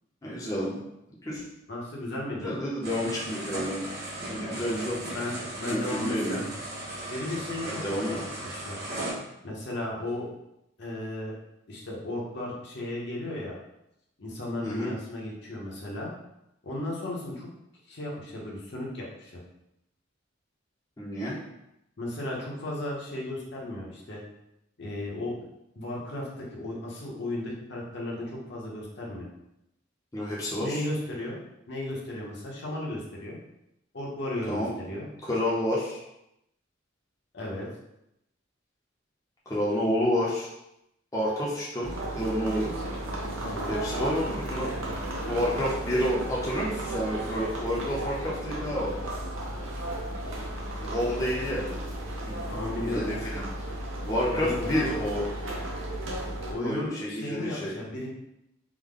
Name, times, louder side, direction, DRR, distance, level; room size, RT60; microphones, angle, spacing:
voice 1, 0.2-0.8 1.2-1.4 2.4-3.8 4.3-5.0 5.7-6.4 7.6-8.2 14.6-14.9 21.0-21.3 30.1-30.8 34.5-34.7 35.2-36.0 39.5-40.5 41.1-42.7 43.7-44.7 45.2-48.9 50.8-51.8 52.3-52.4 52.8-53.4 54.1-55.3 56.6-57.7, equal, 20° left, -6 dB, 0.7 m, -29 dB
voice 2, 1.7-2.5 4.6-6.5 7.1-8.2 8.5-8.8 9.4-10.3 10.8-11.3 11.7-13.6 14.2-16.1 16.6-17.5 17.9-19.4 22.0-24.2 24.8-25.3 25.8-29.3 30.6-31.4 31.7-33.4 33.9-35.1 37.3-37.7 43.4-43.7 52.5-53.1 54.3-54.9 56.5-58.1, left 1 dB, 60° left, -4 dB, 0.9 m, -35 dB
sound 1, 2.8-9.1, right 1 dB, 50° right, 1.1 m, -37 dB
sound 2, 41.8-56.5, right 1 dB, 80° right, 0.8 m, -34 dB
3.5 x 2.2 x 3.6 m, 0.83 s
head